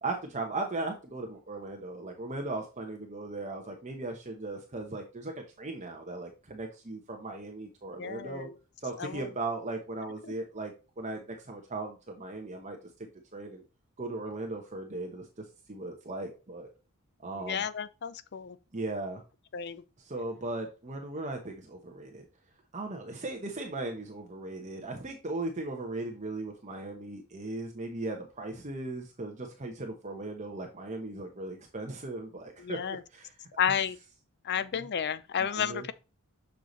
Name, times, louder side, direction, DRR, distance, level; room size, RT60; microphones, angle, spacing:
voice 1, 0.0-8.5 8.8-13.6 14.0-16.7 17.2-17.7 18.7-19.2 20.0-22.2 22.7-33.3 34.7-34.9 35.5-35.9, right 2 dB, 35° right, 0.9 m, -38 dB
voice 2, 8.0-8.5 9.0-9.3 10.2-10.3 17.4-18.6 19.5-19.8 32.6-33.0 33.6-34.0 34.4-35.9, left 8 dB, 50° left, 0.5 m, -32 dB
6.6 x 4.7 x 3.9 m
head